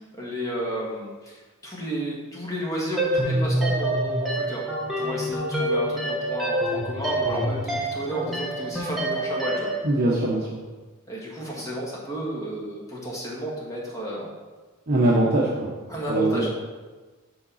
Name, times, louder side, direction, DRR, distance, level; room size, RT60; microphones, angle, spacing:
voice 1, 0.0-4.6 5.0-9.7 11.1-14.3 15.9-16.5, equal, 15° left, -4 dB, 1.7 m, -32 dB
sound 1, 3.0-9.8, right 1 dB, ahead, 1.2 m, -26 dB
voice 2, 9.8-10.5 14.9-15.7 16.1-16.5, right 1 dB, 45° right, -4 dB, 0.8 m, -22 dB
6.5 x 3.9 x 6.2 m, 1.3 s
head